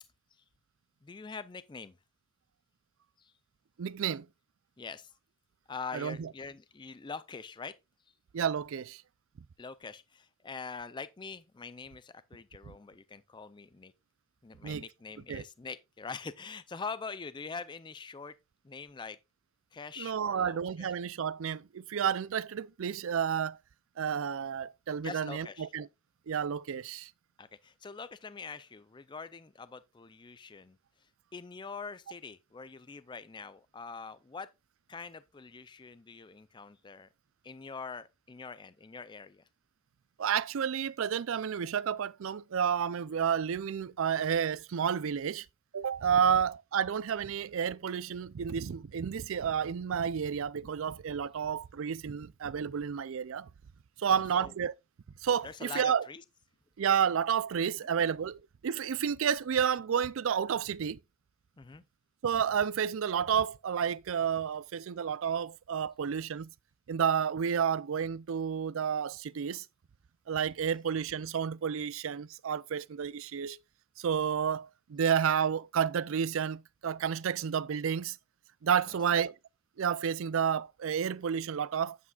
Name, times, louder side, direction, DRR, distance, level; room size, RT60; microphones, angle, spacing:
voice 1, 1.0-2.0 3.2-3.3 4.8-5.1 5.7-7.7 9.6-13.9 14.4-18.3 18.6-19.2 19.7-20.9 25.0-25.7 27.4-34.5 34.9-37.1 37.4-39.4 46.3-46.4 54.1-54.5 55.4-56.2 57.8-58.1 61.6-61.8, left 4 dB, 20° left, 0.4 m, -44 dB
voice 2, 3.8-4.3 5.9-6.3 8.3-9.0 14.6-14.8 15.3-15.4 20.0-23.6 24.0-25.9 26.3-27.1 40.2-45.5 45.7-53.5 54.0-54.7 55.2-56.0 56.8-61.0 62.2-66.5 66.9-69.7 70.3-73.6 74.0-78.2 78.6-79.3 79.8-82.0, right 7 dB, 65° right, 0.4 m, -31 dB
9.5 x 8.3 x 2.4 m
head